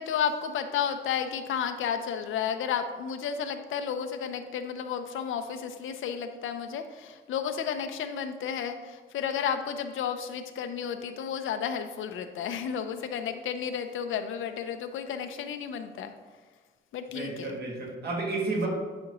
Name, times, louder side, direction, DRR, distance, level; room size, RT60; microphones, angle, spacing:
voice 1, 0.0-16.1 16.9-17.6, left 7 dB, 85° left, 7 dB, 0.6 m, -32 dB
voice 2, 17.1-18.7, right 3 dB, 55° right, -2 dB, 1.9 m, -31 dB
10.0 x 5.1 x 3.0 m, 1.4 s
wide cardioid pair, 165°, 20 cm